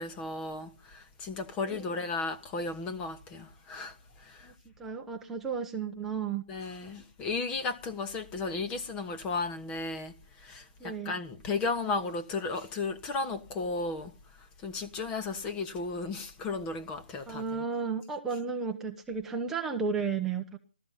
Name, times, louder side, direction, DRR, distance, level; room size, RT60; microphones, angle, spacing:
voice 1, 0.0-4.5 6.5-14.1 14.4-17.6, left 3 dB, 15° left, 1.2 m, -35 dB
voice 2, 4.4-6.4 10.8-11.1 17.3-20.6, right 5 dB, 5° right, 0.9 m, -33 dB
16.5 x 13.0 x 5.7 m
hypercardioid pair, 155°, 5 cm